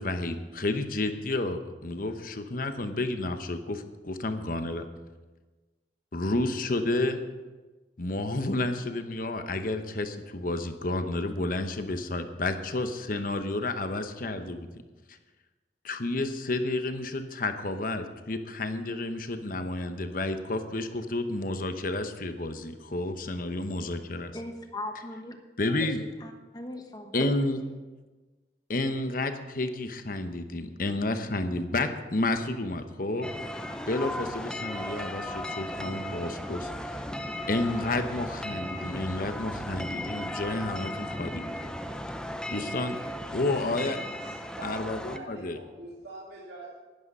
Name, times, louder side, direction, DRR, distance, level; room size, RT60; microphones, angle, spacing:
voice 1, 0.0-4.9 6.1-7.2 8.0-14.7 15.1-15.2 15.8-24.3 25.6-26.0 27.1-27.6 28.7-33.3 33.9-37.0 37.5-41.5 42.5-43.0 43.3-44.0 44.6-45.6, left 2 dB, 50° left, 8 dB, 0.9 m, -31 dB
voice 2, 24.3-25.3 25.8-25.9 26.2-27.1, left 1 dB, 20° left, 5 dB, 1.1 m, -39 dB
sound 1, 33.2-45.2, left 1 dB, 5° left, 0.5 m, -36 dB
voice 3, 43.5-44.0 44.2-46.8, right 2 dB, 70° right, -6 dB, 2.5 m, -45 dB
11.5 x 11.0 x 5.5 m, 1.3 s
head